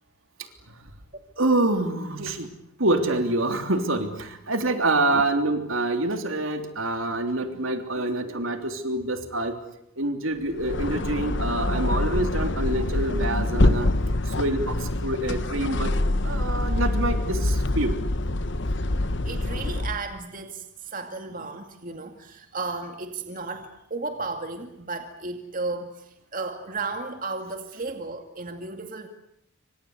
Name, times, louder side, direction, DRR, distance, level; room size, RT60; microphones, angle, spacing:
voice 1, 1.4-2.5 2.8-9.5 10.0-13.9 14.4-14.7 15.0-15.9 16.2-17.9, right 2 dB, 70° right, 6 dB, 3.3 m, -26 dB
sound 1, 10.5-20.1, left 1 dB, 55° left, 1.3 m, -25 dB
voice 2, 19.2-29.1, right 3 dB, 40° right, 5 dB, 2.3 m, -34 dB
28.0 x 26.0 x 8.1 m, 0.78 s
head